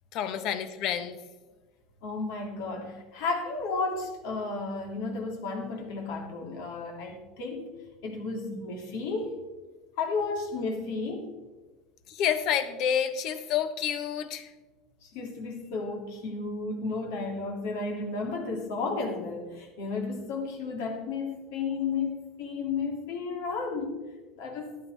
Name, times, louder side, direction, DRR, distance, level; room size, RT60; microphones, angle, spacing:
voice 1, 0.1-1.2 7.0-7.2 12.1-14.5, left 9 dB, 55° left, 10 dB, 1.0 m, -29 dB
voice 2, 2.0-7.7 8.0-9.3 10.0-11.3 15.0-24.0 24.4-24.8, left 4 dB, 75° left, 2 dB, 2.5 m, -33 dB
13.5 x 10.5 x 3.4 m, 1.2 s
supercardioid pair, 135°, 0 cm